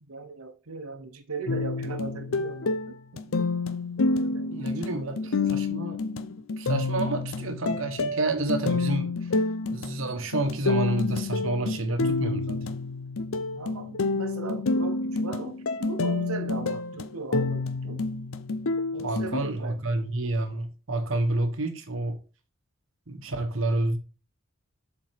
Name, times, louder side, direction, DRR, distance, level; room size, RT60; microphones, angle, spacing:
voice 1, 0.0-3.3 3.9-5.4 9.8-9.9 13.6-18.0 18.9-19.8, right 3 dB, 90° right, 1.0 m, -38 dB
sound 1, 1.5-19.4, left 3 dB, 75° left, 0.7 m, -29 dB
voice 2, 4.5-6.0 6.6-9.3 9.7-12.7 19.0-22.2 23.1-24.0, right 2 dB, 65° right, 1.1 m, -29 dB
7.6 x 4.3 x 4.5 m
head